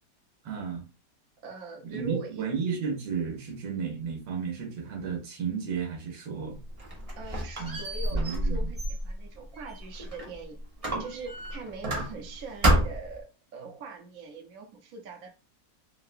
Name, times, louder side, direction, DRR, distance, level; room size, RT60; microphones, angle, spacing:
voice 1, 0.4-0.8 1.8-6.6 7.6-7.8 8.1-8.7, right 6 dB, 85° right, 1.5 m, -33 dB
voice 2, 1.4-2.5 7.2-10.6 11.0-13.3 13.5-15.3, right 4 dB, 60° right, 1.0 m, -42 dB
Squeak, 6.5-10.4 10.8-12.3 12.6-13.2, right 1 dB, 45° right, 0.4 m, -29 dB
3.6 x 2.0 x 2.4 m
omnidirectional pair, 2.0 m